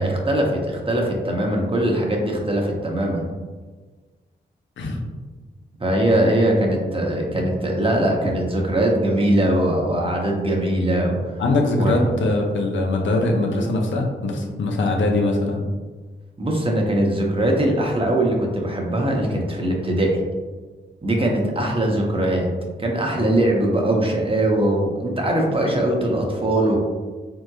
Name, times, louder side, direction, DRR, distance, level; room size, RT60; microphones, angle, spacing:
voice 1, 0.0-3.2 5.8-11.2 11.8-12.1 16.4-20.2 21.0-22.5 22.8-26.8, right 1 dB, 30° right, 0 dB, 0.8 m, -21 dB
voice 2, 11.4-15.7, left 2 dB, 75° left, 1 dB, 0.6 m, -22 dB
3.5 x 2.9 x 2.3 m, 1.4 s
cardioid pair, 50°, 19 cm